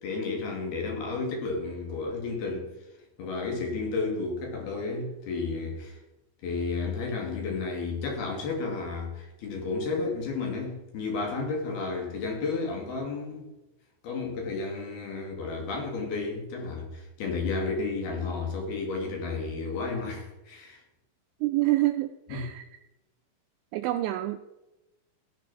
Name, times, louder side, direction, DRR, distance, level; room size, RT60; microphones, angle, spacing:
voice 1, 0.0-2.7 3.2-6.0 6.4-13.5 14.0-20.8 22.3-22.5, left 4 dB, 55° left, 1 dB, 4.2 m, -32 dB
voice 2, 21.4-22.6 23.7-24.4, right 17 dB, 85° right, 8 dB, 2.6 m, -27 dB
14.5 x 11.0 x 4.4 m, 0.97 s
omnidirectional pair, 5.7 m